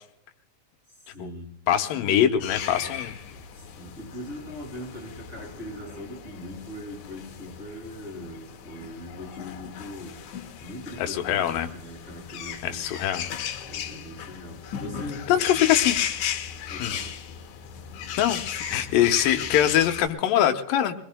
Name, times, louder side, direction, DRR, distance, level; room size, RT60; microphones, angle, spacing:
voice 1, 1.1-1.6 1.9-2.6 3.8-10.3 10.6-12.8 13.6-15.7 16.7-17.2, equal, 20° right, -3 dB, 7.3 m, -40 dB
voice 2, 1.7-3.2 11.0-11.7 12.6-13.3 15.3-16.0 16.8-17.0 18.2-20.9, left 11 dB, 90° left, 7 dB, 2.6 m, -23 dB
sound 1, 2.4-20.1, left 9 dB, 70° left, 2.2 m, -35 dB
24.5 x 21.5 x 2.2 m, 0.76 s
omnidirectional pair, 3.8 m